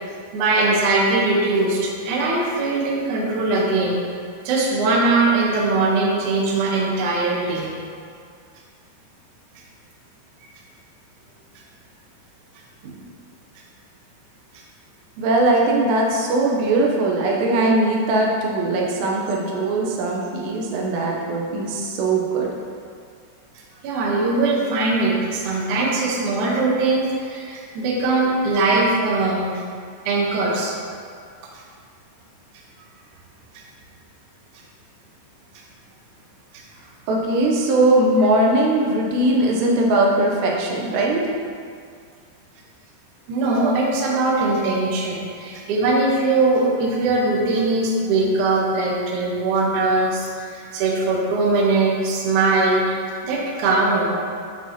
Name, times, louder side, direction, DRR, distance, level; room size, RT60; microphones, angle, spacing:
voice 1, 0.3-4.0 4.4-7.7 12.8-13.0 23.8-29.6 30.1-30.8 43.3-54.1, right 3 dB, 70° right, -3 dB, 1.9 m, -21 dB
voice 2, 15.2-22.5 37.1-41.3, right 2 dB, 85° right, -2 dB, 3.0 m, -20 dB
9.4 x 6.2 x 2.9 m, 2.2 s
omnidirectional pair, 4.9 m